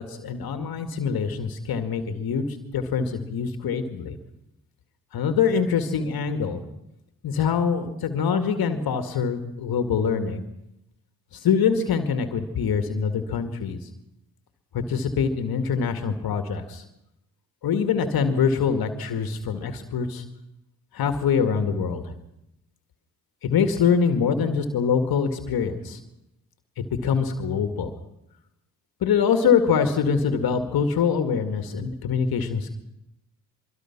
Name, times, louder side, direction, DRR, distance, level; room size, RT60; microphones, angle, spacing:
voice 1, 0.0-2.5 2.7-4.2 5.1-6.6 7.2-10.4 11.4-13.8 14.9-16.8 17.6-20.2 20.9-22.1 23.4-26.0 26.8-27.9 29.0-32.7, left 6 dB, 65° left, 7 dB, 2.1 m, -24 dB
23.5 x 23.5 x 6.0 m, 0.87 s
hypercardioid pair, 45°, 39 cm